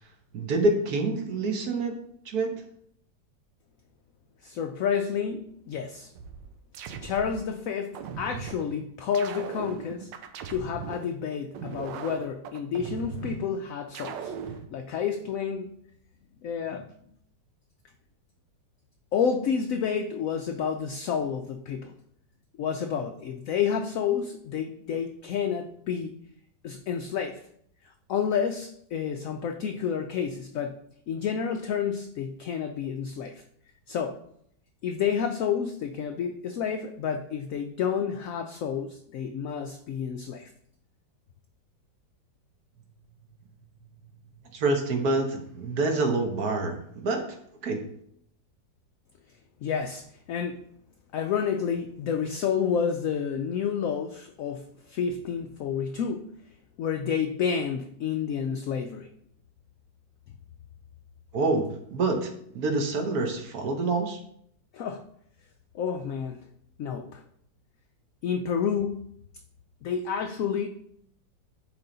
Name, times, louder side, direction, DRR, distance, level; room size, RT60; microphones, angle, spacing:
voice 1, 0.3-2.0 2.2-2.5 44.5-47.4 47.6-47.8 61.3-64.2, right 2 dB, 60° right, 3 dB, 1.5 m, -27 dB
voice 2, 4.4-6.1 7.0-10.1 10.5-14.3 14.7-15.8 16.4-16.9 19.1-21.9 22.6-26.1 26.6-27.4 28.1-30.8 31.1-33.4 33.9-34.2 34.8-40.5 49.6-50.6 51.1-56.4 56.8-59.1 64.7-65.0 65.7-66.4 66.8-67.2 68.2-69.1 69.8-70.7, left 7 dB, 75° left, 5 dB, 0.8 m, -30 dB
sound 1, 6.1-7.5 7.9-8.7 9.1-11.1 11.5-13.5 13.9-14.7, right 7 dB, 85° right, 1.3 m, -38 dB
10.0 x 3.5 x 3.9 m, 0.69 s
omnidirectional pair, 1.9 m